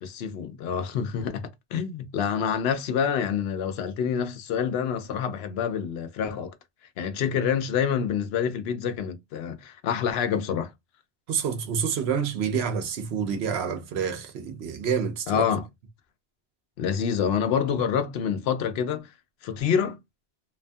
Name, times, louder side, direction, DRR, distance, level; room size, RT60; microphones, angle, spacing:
voice 1, 0.0-6.5 7.0-10.7 15.3-15.6 16.8-19.1 19.4-20.0, left 7 dB, 75° left, 0.8 m, -27 dB
voice 2, 11.3-15.4, right 7 dB, 85° right, 0.9 m, -28 dB
2.7 x 2.5 x 2.2 m
omnidirectional pair, 1.1 m